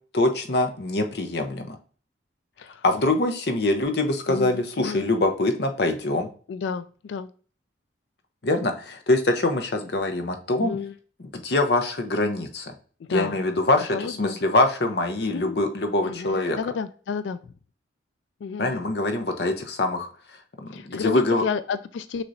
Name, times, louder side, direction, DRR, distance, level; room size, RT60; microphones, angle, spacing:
voice 1, 0.1-1.8 2.8-6.3 8.4-10.8 11.3-12.7 13.1-16.6 18.6-20.1 20.6-21.4, left 2 dB, 60° left, 5 dB, 0.8 m, -24 dB
voice 2, 4.3-5.1 6.5-7.3 10.6-10.9 13.1-13.4 13.8-14.4 15.2-15.5 16.0-17.5 18.4-18.8 20.7-22.2, left 5 dB, 75° left, 13 dB, 0.3 m, -31 dB
6.3 x 3.0 x 2.6 m, 0.41 s
head